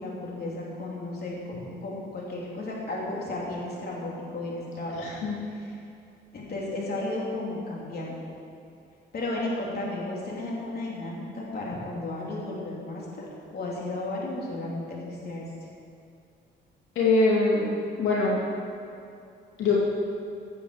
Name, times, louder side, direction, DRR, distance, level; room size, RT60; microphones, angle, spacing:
voice 1, 0.0-5.1 5.6-5.7 6.3-8.1 9.1-15.5, left 2 dB, 50° left, -4 dB, 3.5 m, -34 dB
voice 2, 5.0-5.4 17.0-17.7 18.0-18.4 19.6-19.8, left 3 dB, 80° left, -5 dB, 2.5 m, -23 dB
16.0 x 8.9 x 5.1 m, 2.5 s
cardioid pair, 90°, 20 cm